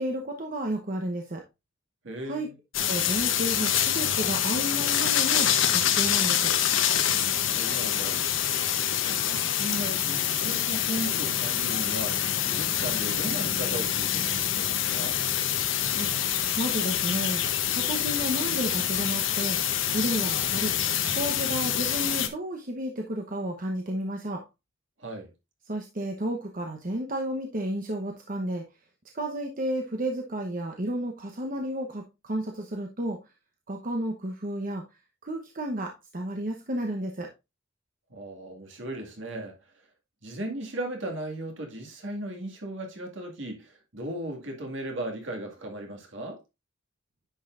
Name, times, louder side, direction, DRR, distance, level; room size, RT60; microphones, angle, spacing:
voice 1, 0.0-1.4 2.3-2.5 2.9-6.5 15.9-19.6 19.9-20.7 21.1-24.4 25.7-28.6 29.1-33.2 33.7-34.8 35.2-37.3, right 1 dB, 45° right, 1.0 m, -32 dB
voice 2, 2.0-2.6 7.4-8.3 8.9-15.2 25.0-25.3 38.1-39.6 40.2-46.4, right 1 dB, 65° right, 2.1 m, -37 dB
sound 1, 2.7-22.3, left 10 dB, 75° left, 1.0 m, -26 dB
10.0 x 5.6 x 2.5 m
head